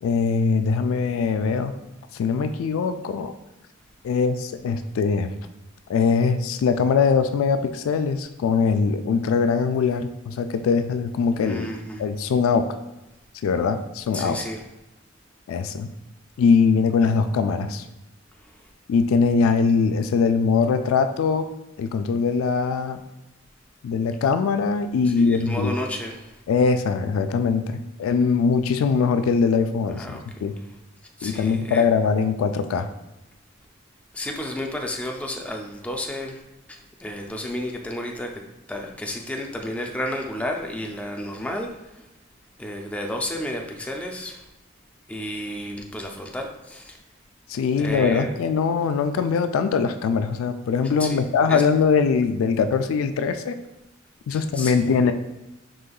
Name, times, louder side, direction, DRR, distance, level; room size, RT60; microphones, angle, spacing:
voice 1, 0.0-1.7 2.1-3.3 4.0-5.3 5.9-11.7 12.0-12.7 13.4-14.4 15.5-15.9 16.4-17.9 18.9-21.5 21.8-23.0 23.8-25.7 26.5-30.5 31.2-32.9 47.5-53.6 54.3-55.1, left 5 dB, 90° left, 9 dB, 0.3 m, -22 dB
voice 2, 11.4-12.0 14.1-14.6 25.1-26.4 30.0-30.2 31.2-31.8 34.1-36.4 36.7-38.3 38.7-42.1 42.6-44.5 45.1-47.0 47.7-48.3 51.0-51.2 51.5-51.6 54.3-55.0, left 1 dB, 5° left, 1 dB, 0.3 m, -32 dB
5.0 x 3.7 x 2.3 m, 0.99 s
head